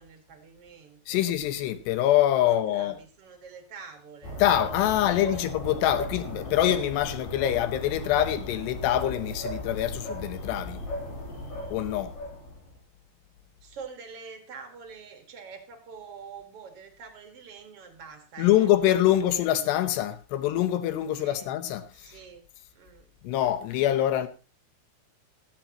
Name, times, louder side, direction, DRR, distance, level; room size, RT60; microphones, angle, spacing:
voice 1, 0.0-1.2 2.4-4.4 4.9-5.4 13.6-19.9 21.1-21.5 21.9-23.2, right 5 dB, 65° right, 1.4 m, -46 dB
voice 2, 1.1-3.0 4.4-10.8 11.7-12.2 18.4-22.2 23.2-24.3, left 12 dB, 75° left, 2.6 m, -25 dB
sound 1, 4.2-12.8, left 1 dB, 55° left, 4.7 m, -36 dB
16.0 x 14.5 x 2.9 m
omnidirectional pair, 5.7 m